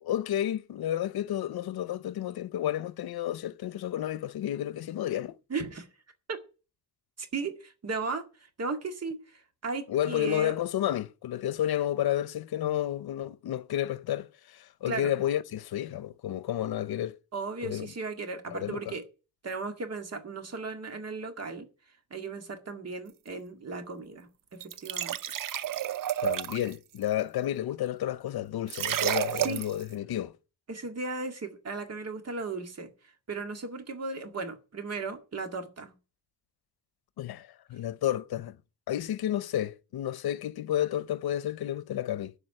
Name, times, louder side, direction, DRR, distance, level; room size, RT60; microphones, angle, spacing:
voice 1, 0.0-5.4 9.9-17.2 17.6-17.9 18.5-18.9 26.2-30.3 37.2-38.6 38.9-42.3, left 11 dB, 90° left, 0.7 m, -31 dB
voice 2, 5.5-5.9 6.3-6.4 7.2-10.6 14.9-15.1 17.3-19.0 19.4-21.7 22.1-24.3 24.8-25.2 29.4-29.6 30.7-32.9 33.3-35.9, right 4 dB, 45° right, 2.0 m, -36 dB
sound 1, 24.6-26.7 28.7-29.8, right 11 dB, 65° right, 0.6 m, -30 dB
12.5 x 4.9 x 8.6 m
wide cardioid pair, 160°, 36 cm